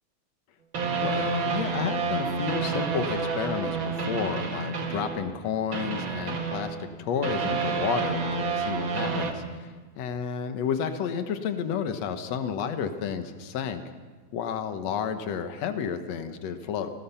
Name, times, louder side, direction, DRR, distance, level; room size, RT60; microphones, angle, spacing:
sound 1, 0.7-5.4 5.7-9.3, right 5 dB, 45° right, 2.3 m, -29 dB
voice 1, 0.8-9.4 10.0-13.8 14.3-16.9, left 7 dB, 65° left, 8 dB, 2.4 m, -31 dB
29.0 x 20.0 x 5.8 m, 1.4 s
omnidirectional pair, 3.4 m